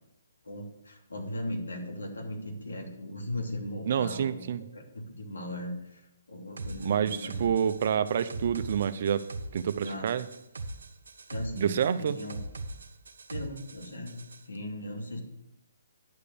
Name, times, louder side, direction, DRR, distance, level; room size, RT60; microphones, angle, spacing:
voice 1, 0.4-4.5 4.7-7.4 9.8-10.1 11.3-12.4 13.3-15.2, left 1 dB, 85° left, 1 dB, 3.0 m, -38 dB
voice 2, 3.9-4.6 6.8-9.2 9.5-10.2 11.6-12.2, right 8 dB, 55° right, 13 dB, 0.6 m, -28 dB
sound 1, 6.6-14.4, right 2 dB, 80° right, 0.9 m, -41 dB
10.0 x 5.0 x 6.8 m, 0.85 s
hypercardioid pair, 145°, 0 cm